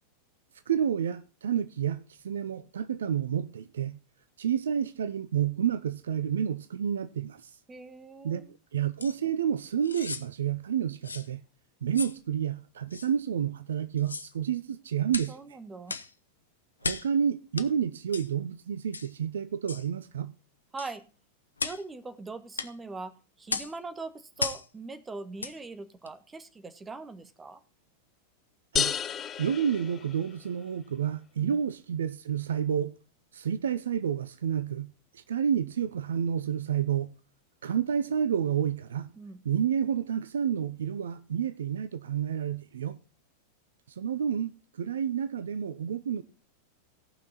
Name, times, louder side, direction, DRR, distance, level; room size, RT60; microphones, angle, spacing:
voice 1, 0.7-4.0 4.4-7.4 8.2-8.4 8.7-11.4 11.8-15.3 16.8-20.3 28.7-28.9 29.4-32.9 33.3-34.9 35.1-37.1 37.6-39.1 39.4-43.0 44.0-44.5 44.8-46.2, right 8 dB, 65° right, 0.6 m, -29 dB
voice 2, 7.7-8.5 15.3-16.0 20.7-21.0 21.6-27.6 31.4-31.6 39.1-39.4, right 3 dB, 15° right, 1.4 m, -41 dB
sound 1, 9.0-9.2 9.8-10.3 11.0-11.3 11.9-12.2 12.9-13.1 14.0-14.3 15.1-15.3 15.9-16.1 16.8-17.1 17.6-17.7 18.1-18.3 18.9-19.1 19.7-19.9 20.8-20.9 21.6-21.8 22.6-22.7 23.5-23.7 24.4-24.7 25.4-25.6 26.0-26.1, left 4 dB, 75° left, 0.8 m, -35 dB
sound 2, 28.8-30.6, left 8 dB, 25° left, 0.6 m, -32 dB
17.5 x 6.0 x 4.1 m
figure-of-eight pair, 90°, 0 cm